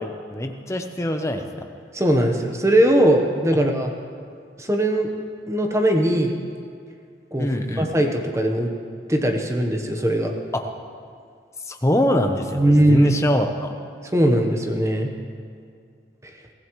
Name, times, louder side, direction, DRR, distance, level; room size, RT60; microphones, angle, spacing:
voice 1, 0.0-1.5 3.5-3.6 7.4-7.9 10.5-10.6 11.7-13.7, left 1 dB, 15° left, 5 dB, 0.8 m, -23 dB
voice 2, 1.9-3.9 4.6-5.1 5.5-6.3 7.3-7.5 7.8-8.7 9.1-10.3 12.5-13.4 14.1-15.1, right 1 dB, 15° right, 2 dB, 1.0 m, -19 dB
23.0 x 15.5 x 3.1 m, 2.3 s
head